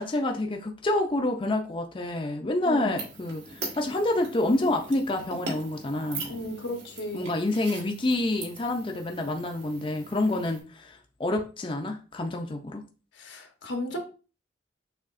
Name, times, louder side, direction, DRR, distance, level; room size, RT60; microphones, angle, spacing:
voice 1, 0.0-6.3 7.1-12.8, left 2 dB, 30° left, 0.5 m, -28 dB
voice 2, 2.6-3.0 6.3-7.3 13.2-14.0, left 1 dB, 85° left, 1.0 m, -34 dB
sound 1, 3.0-10.6, right 3 dB, 65° right, 1.6 m, -41 dB
6.5 x 2.9 x 2.5 m
head